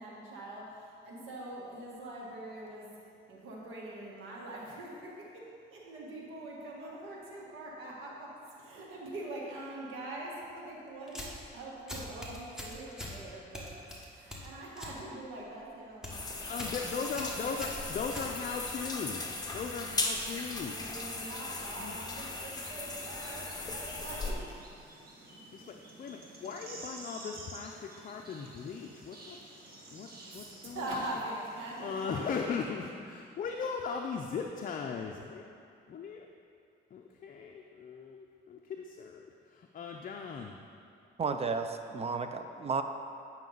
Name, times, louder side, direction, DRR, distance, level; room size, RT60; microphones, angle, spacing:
voice 1, 0.0-2.9 3.3-5.4 5.7-8.3 8.6-11.2 11.5-17.7 20.6-24.3 30.3-32.4, right 1 dB, 90° right, -3 dB, 1.6 m, -43 dB
sound 1, 11.1-11.5 11.9-13.2 13.5-15.0 15.3-15.6 15.9-16.2 16.6-16.8 17.1-18.7, left 1 dB, 5° right, 1.5 m, -42 dB
sound 2, 16.1-24.3, left 3 dB, 20° left, 1.0 m, -38 dB
voice 2, 16.5-20.8 21.8-22.1 25.5-29.4 29.9-30.1 30.3-31.0 31.8-35.5 35.9-36.3 36.9-39.3 39.5-40.6, left 5 dB, 45° left, 2 dB, 0.5 m, -38 dB
sound 3, 16.5-32.1, right 2 dB, 50° right, 1.5 m, -52 dB
voice 3, 41.2-42.8, right 5 dB, 30° right, 8 dB, 0.5 m, -33 dB
9.0 x 5.9 x 3.9 m, 2.5 s
cardioid pair, 90°, 20 cm